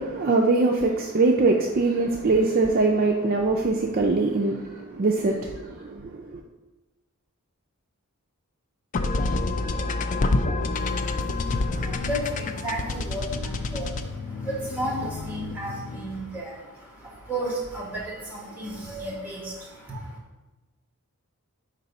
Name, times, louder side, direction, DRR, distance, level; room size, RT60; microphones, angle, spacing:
voice 1, 0.0-6.1, right 3 dB, 40° right, 0.4 m, -22 dB
sound 1, 8.9-16.3, left 2 dB, 35° left, 0.3 m, -28 dB
voice 2, 10.7-20.2, right 1 dB, 10° right, 1.5 m, -34 dB
4.7 x 4.0 x 5.3 m
head